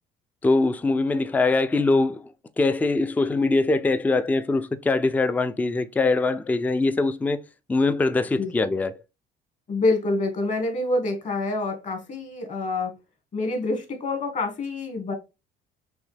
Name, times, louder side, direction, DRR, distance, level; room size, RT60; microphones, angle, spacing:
voice 1, 0.4-7.4 7.7-9.0, left 3 dB, 10° left, 0.3 m, -23 dB
voice 2, 9.7-12.9 13.3-15.1, left 2 dB, 45° left, 1.5 m, -26 dB
6.1 x 2.2 x 3.3 m
cardioid pair, 110°, 17 cm